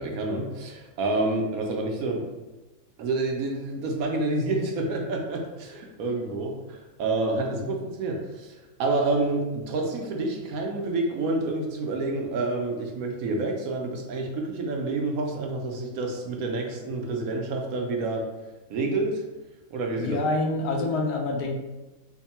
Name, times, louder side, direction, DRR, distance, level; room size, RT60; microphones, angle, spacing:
voice 1, 0.0-2.2 3.0-18.3 18.7-19.2 19.7-20.2, right 2 dB, 75° right, 1 dB, 1.1 m, -28 dB
voice 2, 20.0-21.6, left 2 dB, 90° left, 2 dB, 1.2 m, -26 dB
3.6 x 2.2 x 4.2 m, 1.1 s
omnidirectional pair, 1.6 m